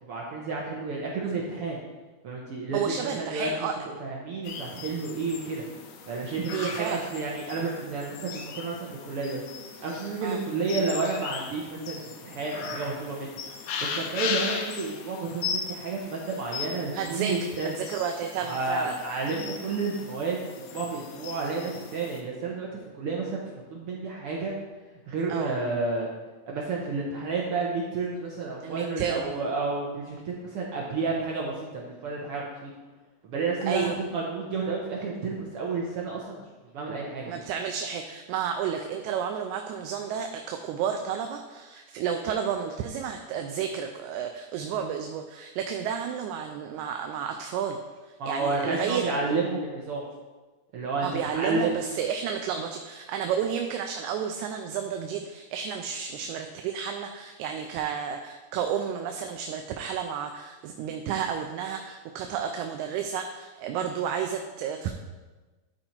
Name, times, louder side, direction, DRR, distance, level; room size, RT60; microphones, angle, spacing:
voice 1, 0.0-1.8 2.2-3.5 3.8-5.6 6.1-9.4 9.8-13.4 13.8-17.7 18.4-24.5 25.1-26.1 26.5-32.7 33.2-36.4 36.7-37.4 48.2-50.0 50.7-51.8, right 3 dB, 65° right, -3 dB, 1.6 m, -31 dB
voice 2, 2.7-3.8 6.5-7.1 10.2-10.4 16.9-18.9 25.3-25.6 28.6-29.5 33.7-34.0 37.3-47.8 48.3-49.0 51.0-64.9, right 7 dB, 85° right, 5 dB, 2.0 m, -31 dB
sound 1, 4.5-22.2, left 6 dB, 70° left, 1.8 m, -38 dB
11.5 x 4.4 x 4.4 m, 1.2 s
omnidirectional pair, 3.4 m